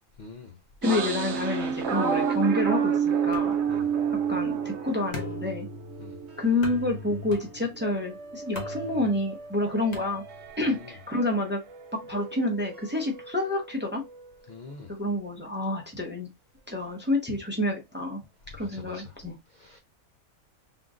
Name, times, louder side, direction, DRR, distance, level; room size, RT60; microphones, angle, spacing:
voice 1, 0.2-0.5 3.7-3.9 6.0-6.2 10.7-10.8 14.5-14.9 18.6-19.1 19.5-19.8, left 4 dB, 65° left, 0.4 m, -44 dB
voice 2, 0.8-3.6 4.3-5.7 6.4-10.2 10.6-11.6 11.9-14.0 14.9-16.3 16.7-18.2 18.5-19.3, left 2 dB, 10° right, 0.5 m, -28 dB
sound 1, 0.8-6.8 7.2-11.4 11.7-14.3, right 7 dB, 65° right, 0.8 m, -31 dB
sound 2, 3.3-10.7, left 4 dB, 35° left, 0.8 m, -42 dB
3.7 x 2.5 x 3.6 m
omnidirectional pair, 1.5 m